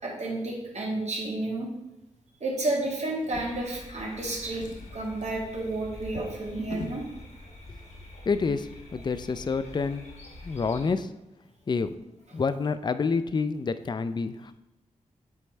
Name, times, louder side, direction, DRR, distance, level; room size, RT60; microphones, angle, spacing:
voice 1, 0.0-1.7 2.4-4.6 4.9-7.0, right 2 dB, 60° right, -2 dB, 1.9 m, -31 dB
Drawer open or close, 3.2-4.2 4.5-7.1 8.0-8.1 8.5-8.6, left 3 dB, 85° left, 0.9 m, -44 dB
sound 1, 3.3-10.9, left 1 dB, 55° left, 1.4 m, -46 dB
voice 2, 8.3-10.1 10.4-11.1 11.7-11.9 12.3-14.5, left 4 dB, 35° left, 12 dB, 0.4 m, -28 dB
8.2 x 3.1 x 4.4 m, 0.91 s
cardioid pair, 55°, 13 cm